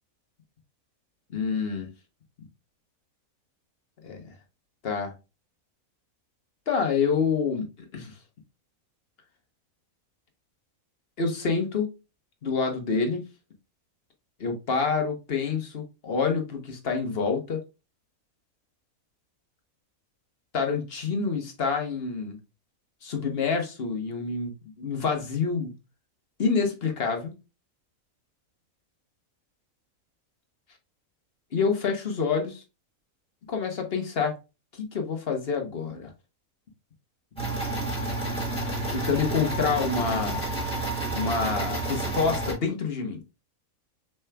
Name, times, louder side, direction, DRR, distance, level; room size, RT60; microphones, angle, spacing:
voice 1, 1.3-1.9 4.0-4.2 4.8-5.1 6.7-7.7 7.9-8.1 11.2-11.9 12.4-13.2 14.4-17.6 20.5-22.4 23.0-25.7 26.4-27.3 31.5-32.6 33.5-34.4 34.7-36.1 38.3-38.4 38.9-40.4 41.1-43.2, left 5 dB, 45° left, 1.2 m, -27 dB
sound 1, 37.4-42.5, right 2 dB, 5° left, 2.9 m, -30 dB
6.1 x 3.5 x 2.3 m
omnidirectional pair, 1.5 m